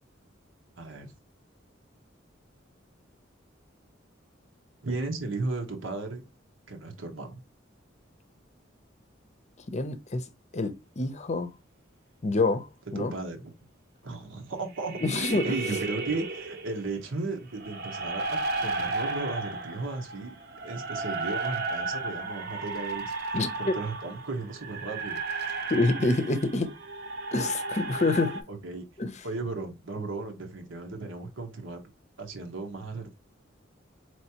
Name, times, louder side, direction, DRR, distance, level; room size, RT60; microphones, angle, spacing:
voice 1, 0.8-1.1 4.8-6.2 6.7-7.4 12.9-13.5 14.0-20.3 20.6-25.2 28.5-28.8 29.2-31.8 32.2-33.1, right 3 dB, 85° right, 1.2 m, -35 dB
voice 2, 9.7-10.2 10.5-11.5 12.2-12.7 12.9-13.1 15.0-15.6 23.3-23.8 25.7-26.7 27.3-28.4 29.0-29.1, left 2 dB, 35° left, 0.6 m, -27 dB
sound 1, 14.8-16.9 17.5-28.4, right 3 dB, 55° right, 0.9 m, -34 dB
4.4 x 3.2 x 2.9 m
head